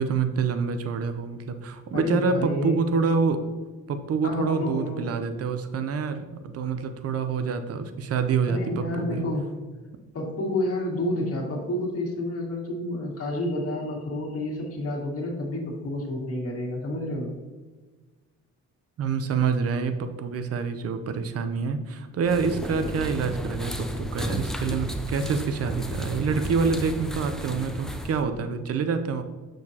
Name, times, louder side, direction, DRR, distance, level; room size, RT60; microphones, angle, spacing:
voice 1, 0.0-3.4 3.9-9.2 19.0-29.2, right 5 dB, 55° right, 9 dB, 0.7 m, -27 dB
voice 2, 1.9-2.8 4.2-5.1 8.5-9.5 10.1-17.3, left 1 dB, 50° left, -1 dB, 1.9 m, -29 dB
sound 1, 22.2-28.2, left 1 dB, ahead, 0.5 m, -33 dB
6.5 x 6.4 x 2.9 m, 1.3 s
cardioid pair, 105°, 30 cm